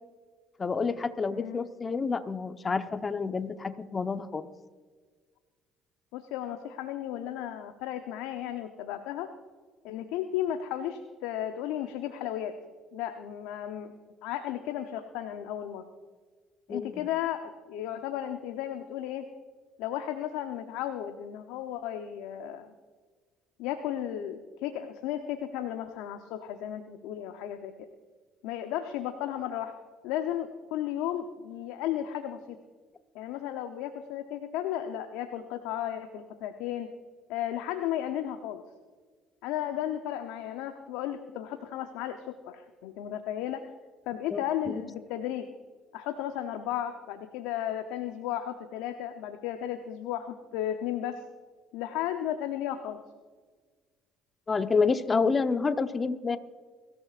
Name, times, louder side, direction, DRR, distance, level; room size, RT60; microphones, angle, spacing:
voice 1, 0.6-4.5 16.7-17.0 44.3-44.4 44.7-44.8 54.5-56.4, left 4 dB, 35° left, 9 dB, 1.0 m, -28 dB
voice 2, 1.3-1.6 6.1-9.3 9.8-12.5 12.9-13.9 14.2-15.8 16.7-19.2 19.8-22.7 23.6-27.9 28.4-29.7 30.0-32.6 33.1-36.9 37.3-38.6 39.4-43.6 44.1-45.4 45.9-51.2 51.7-53.0, left 11 dB, 75° left, 7 dB, 0.8 m, -34 dB
23.5 x 14.0 x 2.5 m, 1.5 s
hypercardioid pair, 60°, 0 cm